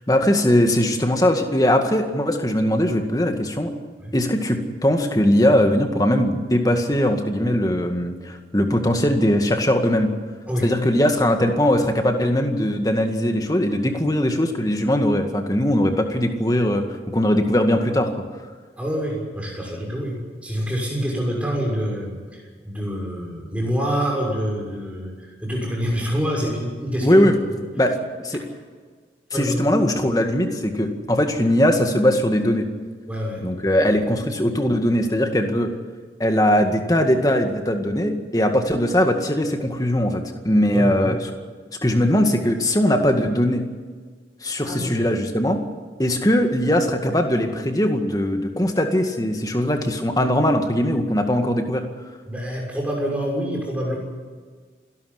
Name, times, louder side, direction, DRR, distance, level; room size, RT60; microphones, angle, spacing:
voice 1, 0.0-3.7 4.1-10.1 10.6-18.1 27.0-27.3 27.8-27.9 28.2-28.4 29.4-32.7 33.4-35.7 36.2-41.2 41.8-43.6 44.4-45.6 46.0-51.9, equal, 20° left, 5 dB, 2.0 m, -20 dB
voice 2, 18.8-27.2 27.5-27.7 28.3-28.4 29.3-29.7 33.1-33.4 40.7-41.1 44.6-45.1 52.3-54.0, equal, 10° right, -2 dB, 6.4 m, -26 dB
27.0 x 12.5 x 9.7 m, 1.5 s
head